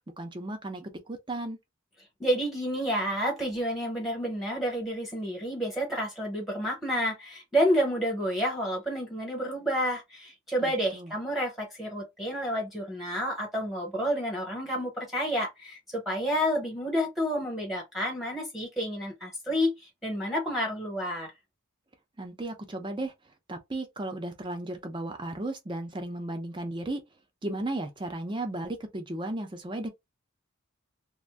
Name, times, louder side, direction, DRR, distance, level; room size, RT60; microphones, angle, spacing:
voice 1, 0.2-1.6 10.6-11.1 22.2-23.1 23.5-27.0 27.4-29.9, right 1 dB, 20° right, 0.5 m, -35 dB
voice 2, 2.2-21.3, equal, ahead, 0.9 m, -30 dB
2.5 x 2.1 x 3.3 m
head